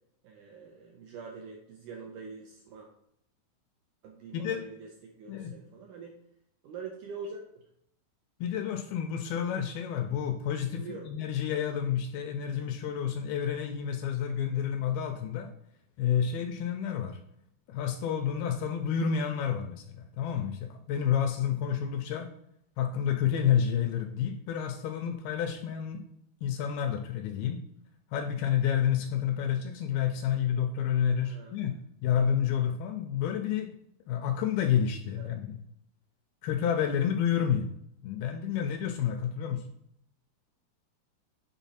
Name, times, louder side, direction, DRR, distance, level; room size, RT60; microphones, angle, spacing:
voice 1, 0.2-2.9 4.0-6.2 6.6-7.4 10.7-11.1 31.2-31.5 35.2-35.3, right 5 dB, 85° right, 1 dB, 1.8 m, -44 dB
voice 2, 8.4-15.5 16.0-17.2 17.7-22.3 22.8-26.0 26.4-27.6 28.1-31.7 32.0-33.7 34.1-35.6 36.4-37.7 38.0-39.6, left 8 dB, 80° left, 6 dB, 2.2 m, -29 dB
8.2 x 3.7 x 4.1 m, 0.71 s
omnidirectional pair, 4.6 m